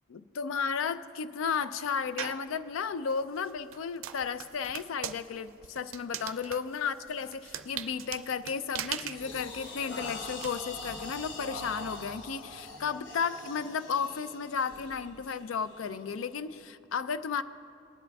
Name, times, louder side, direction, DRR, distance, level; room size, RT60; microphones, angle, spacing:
voice 1, 0.1-17.4, left 6 dB, 85° left, 14 dB, 0.4 m, -33 dB
sound 1, 2.2-2.5 3.1-10.5, right 10 dB, 90° right, 0.4 m, -40 dB
sound 2, 7.1-7.3 7.8-8.1 8.5-16.6, left 2 dB, 65° left, 0.8 m, -44 dB
19.5 x 10.5 x 2.3 m, 2.4 s
head